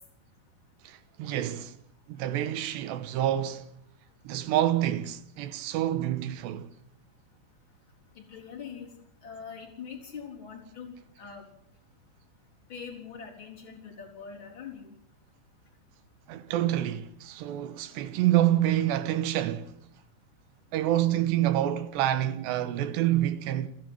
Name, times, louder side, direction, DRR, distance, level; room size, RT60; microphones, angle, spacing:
voice 1, 0.8-1.8 2.1-3.6 4.2-6.7 16.3-19.7 20.7-23.7, right 12 dB, 75° right, 3.0 m, -27 dB
voice 2, 8.2-8.9 9.2-10.9 11.2-11.4 12.7-14.9, left 6 dB, 25° left, 4.2 m, -43 dB
29.0 x 11.0 x 9.8 m
omnidirectional pair, 5.6 m